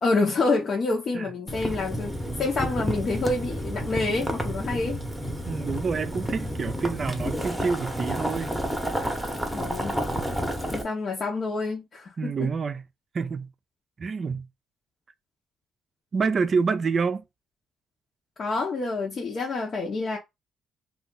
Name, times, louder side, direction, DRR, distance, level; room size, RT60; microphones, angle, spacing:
voice 1, 0.0-5.0 9.5-10.0 10.7-12.5 18.4-20.2, left 3 dB, 50° left, 0.8 m, -27 dB
Boiling, 1.5-10.8, equal, ahead, 0.9 m, -30 dB
voice 2, 5.5-8.5 12.2-12.8 13.1-13.5 14.0-14.5 16.1-17.2, right 5 dB, 45° right, 0.4 m, -27 dB
2.5 x 2.4 x 3.8 m
cardioid pair, 90°, 0 cm